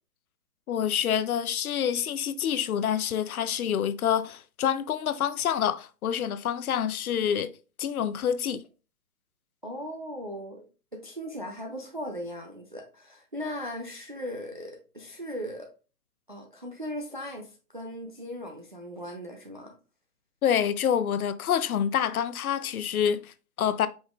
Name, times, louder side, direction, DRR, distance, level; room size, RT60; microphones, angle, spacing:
voice 1, 0.7-7.5 7.8-8.6 20.4-23.9, left 9 dB, 65° left, 0.5 m, -27 dB
voice 2, 9.6-10.7 10.9-15.7 16.3-19.7, equal, 35° right, 0.4 m, -38 dB
4.9 x 3.6 x 2.3 m
hypercardioid pair, 160°, 47 cm